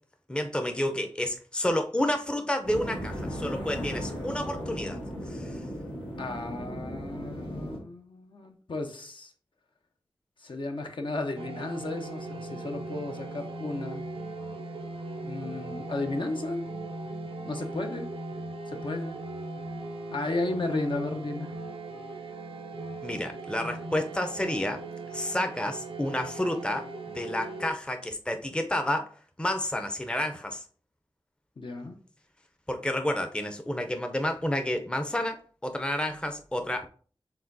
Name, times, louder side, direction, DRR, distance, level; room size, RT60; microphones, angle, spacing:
voice 1, 0.3-5.0 5.3-5.6 23.0-24.8 25.1-29.1 29.4-30.6 32.7-36.9, left 1 dB, 10° left, 0.5 m, -30 dB
sound 1, 2.6-7.8, equal, 80° left, 1.6 m, -36 dB
voice 2, 6.2-9.3 10.4-14.0 15.2-16.7 17.5-18.1 18.7-19.2 20.1-21.5 31.6-32.0, left 2 dB, 60° left, 0.7 m, -34 dB
sound 2, 11.4-27.7, right 2 dB, 85° right, 0.5 m, -39 dB
4.8 x 3.5 x 2.6 m
wide cardioid pair, 50°, 9 cm